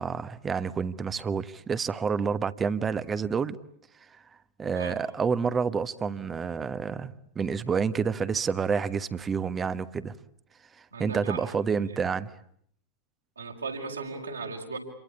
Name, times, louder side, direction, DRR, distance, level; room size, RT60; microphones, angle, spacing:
voice 1, 0.0-3.6 4.6-10.1 10.8-12.3, right 6 dB, 20° right, 1.3 m, -29 dB
voice 2, 10.9-11.5 11.9-12.0 13.4-14.8, right 4 dB, 75° right, 5.6 m, -37 dB
29.0 x 24.0 x 8.5 m
figure-of-eight pair, 90°, 0 cm